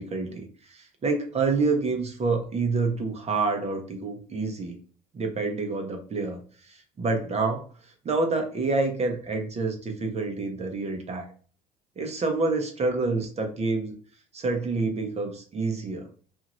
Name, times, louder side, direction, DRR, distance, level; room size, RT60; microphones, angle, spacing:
voice 1, 0.0-4.8 5.1-6.4 6.7-7.7 8.0-11.3 12.0-13.9 14.3-16.1, right 3 dB, 35° right, 4 dB, 0.9 m, -28 dB
2.7 x 2.6 x 3.0 m, 0.43 s
supercardioid pair, 85°, 19 cm